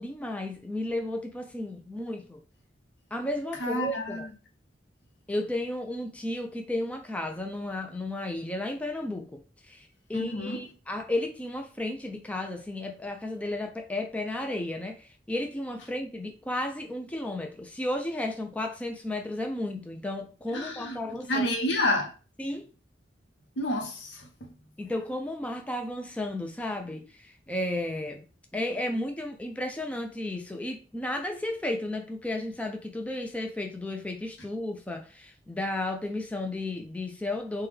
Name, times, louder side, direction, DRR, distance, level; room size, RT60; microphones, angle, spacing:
voice 1, 0.0-2.4 3.1-4.2 5.3-9.4 9.7-21.5 22.4-22.7 24.8-28.2 28.5-37.7, left 1 dB, 10° left, 0.3 m, -33 dB
voice 2, 3.6-4.3 10.1-10.7 20.5-21.0 21.3-22.1 23.6-24.5, left 1 dB, 70° left, 0.8 m, -29 dB
3.4 x 2.2 x 3.2 m
head